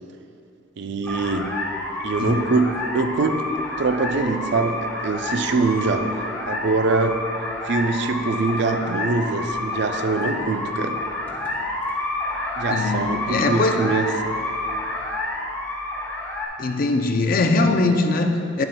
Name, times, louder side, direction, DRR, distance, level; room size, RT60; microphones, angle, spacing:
voice 1, 0.8-1.5 2.0-3.5 3.8-6.1 6.4-7.2 7.6-11.0 12.6-14.4, right 3 dB, 60° right, 7 dB, 0.4 m, -23 dB
sound 1, 1.0-16.5, left 2 dB, 10° left, 0.9 m, -29 dB
voice 2, 12.7-13.8 16.6-18.6, left 3 dB, 45° left, 6 dB, 0.4 m, -21 dB
9.8 x 7.6 x 2.2 m, 2.7 s
head